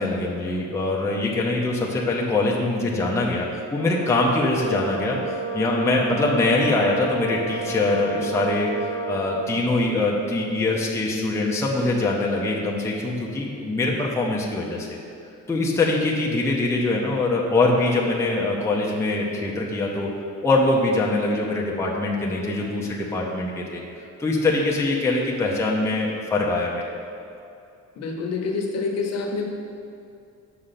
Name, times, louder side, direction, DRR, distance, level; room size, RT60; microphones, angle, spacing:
voice 1, 0.0-14.9 15.5-20.1 20.4-23.8 24.2-26.8, left 2 dB, 10° left, -2 dB, 0.7 m, -23 dB
Brass instrument, 3.8-9.6, right 4 dB, 35° right, 0.6 m, -31 dB
voice 2, 28.0-29.4, left 4 dB, 55° left, 1 dB, 1.1 m, -27 dB
6.7 x 5.0 x 5.8 m, 2.6 s
cardioid pair, 155°, 31 cm